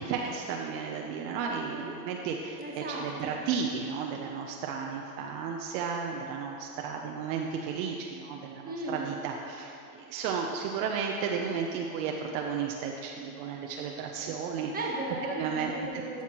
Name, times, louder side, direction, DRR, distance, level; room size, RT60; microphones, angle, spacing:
voice 1, 0.0-14.9 15.4-15.7, right 6 dB, 60° right, 1 dB, 0.8 m, -33 dB
voice 2, 2.6-3.6 8.6-9.1 14.7-16.2, right 2 dB, 20° right, -3 dB, 1.6 m, -36 dB
12.5 x 5.7 x 3.0 m, 2.7 s
supercardioid pair, 110°, 46 cm